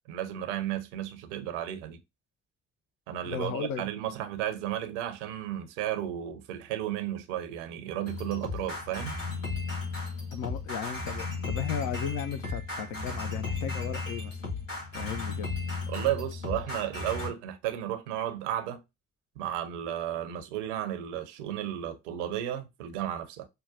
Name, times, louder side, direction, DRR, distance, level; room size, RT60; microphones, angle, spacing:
voice 1, 0.1-2.0 3.1-9.2 15.9-18.8 19.4-23.5, right 11 dB, 70° right, 0.6 m, -33 dB
voice 2, 3.2-3.9 10.3-14.4 14.9-15.5, left 7 dB, 50° left, 0.6 m, -35 dB
sound 1, 8.1-17.3, left 3 dB, 85° left, 0.9 m, -35 dB
5.5 x 2.2 x 2.4 m
figure-of-eight pair, 45°, 37 cm